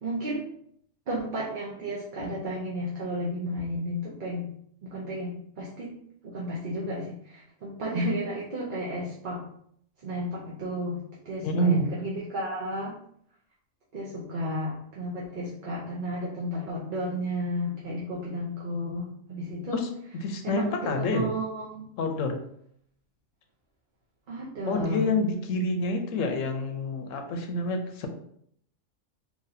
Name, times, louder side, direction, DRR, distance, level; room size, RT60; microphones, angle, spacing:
voice 1, 0.0-0.5 1.1-4.5 4.8-6.0 6.2-9.4 10.0-13.0 13.9-19.9 20.4-21.8 24.3-25.1, equal, 50° right, -5 dB, 0.7 m, -33 dB
voice 2, 11.4-11.9 19.7-19.9 20.2-21.2 22.0-22.4 24.7-28.1, left 2 dB, 85° left, 5 dB, 1.0 m, -27 dB
4.0 x 3.0 x 2.6 m, 0.68 s
omnidirectional pair, 1.3 m